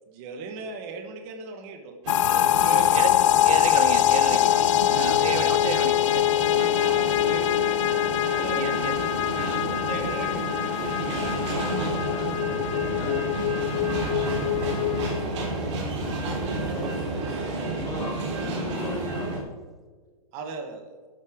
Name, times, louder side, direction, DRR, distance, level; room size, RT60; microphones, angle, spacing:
voice 1, 0.1-2.0 2.4-2.9 6.8-8.9 9.4-10.5 16.5-16.9 20.3-21.0, right 4 dB, 35° right, 1.3 m, -38 dB
sound 1, 2.0-19.4, right 2 dB, 50° right, 3.1 m, -31 dB
sound 2, 2.1-15.1, left 13 dB, 60° left, 0.5 m, -23 dB
voice 2, 3.4-4.4 4.9-6.2 8.6-8.9, right 7 dB, 70° right, 0.9 m, -31 dB
voice 3, 12.0-13.3 16.5-17.0 17.6-19.4, left 2 dB, 20° left, 2.8 m, -37 dB
sound 3, 13.8-19.5, left 3 dB, ahead, 1.0 m, -41 dB
12.0 x 8.3 x 3.6 m
hypercardioid pair, 145°, 19 cm